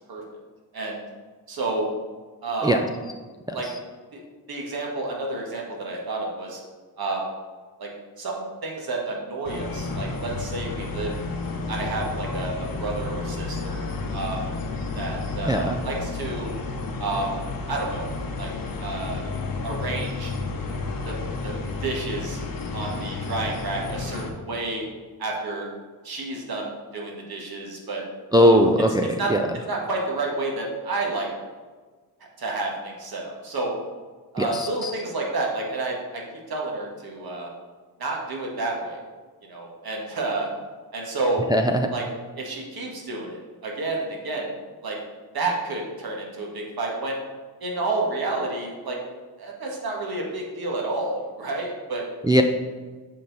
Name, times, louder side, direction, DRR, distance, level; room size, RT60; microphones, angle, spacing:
voice 1, 1.5-1.9 2.4-2.8 3.5-3.7 4.1-4.2 4.5-6.6 7.0-7.3 7.8-7.9 8.2-11.1 11.7-13.8 14.1-14.4 14.9-16.5 17.0-17.4 17.7-18.1 18.4-18.5 18.8-19.2 19.6-20.3 21.0-21.2 21.4-21.5 21.8-22.4 22.7-24.8 25.2-25.7 26.0-28.0 28.4-28.6 29.2-29.3 29.7-31.3 32.4-33.7 34.3-36.2 36.5-37.5 38.0-39.0 39.5-40.5 40.9-41.4 41.9-42.0 42.4-44.5 44.8-45.0 45.3-47.2 47.6-49.0 49.4-52.0, right 2 dB, 65° right, -1 dB, 1.6 m, -30 dB
sound 1, 9.4-24.3, left 3 dB, 60° left, 1.0 m, -31 dB
voice 2, 15.5-15.8 28.3-29.4 34.4-34.9 41.5-41.9 52.2-52.4, equal, 10° right, 3 dB, 0.4 m, -20 dB
7.3 x 4.3 x 4.0 m, 1.4 s
cardioid pair, 75°, 40 cm